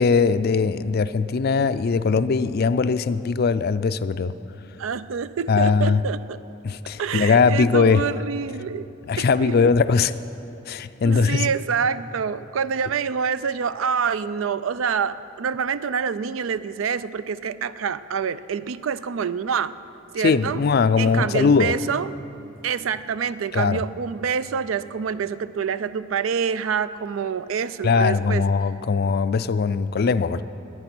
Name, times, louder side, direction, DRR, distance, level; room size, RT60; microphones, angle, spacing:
voice 1, 0.0-4.3 5.5-6.0 6.6-8.0 9.1-10.1 10.7-11.5 20.2-21.7 23.5-23.8 27.8-30.4, left 5 dB, 50° left, 14 dB, 0.4 m, -20 dB
voice 2, 4.8-6.4 7.0-9.6 11.0-19.8 20.1-20.6 21.0-22.1 22.6-28.5, right 6 dB, 75° right, 15 dB, 0.4 m, -27 dB
21.0 x 9.0 x 6.0 m, 2.9 s
head